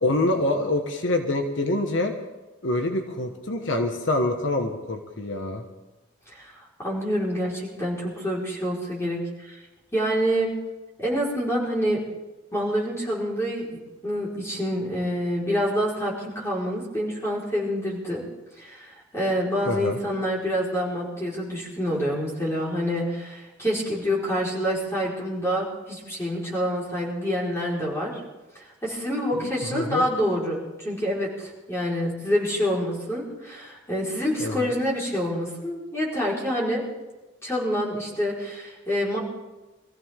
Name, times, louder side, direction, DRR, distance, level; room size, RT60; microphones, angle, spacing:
voice 1, 0.0-2.1 2.6-5.6 19.6-20.0 29.3-30.0 34.4-34.7, left 2 dB, 75° left, 4 dB, 1.3 m, -26 dB
voice 2, 6.3-9.6 9.9-10.5 11.0-12.0 12.5-18.2 18.6-28.2 28.5-36.8 37.4-39.2, equal, 15° left, -6 dB, 4.7 m, -27 dB
24.0 x 15.0 x 3.7 m, 1.1 s
head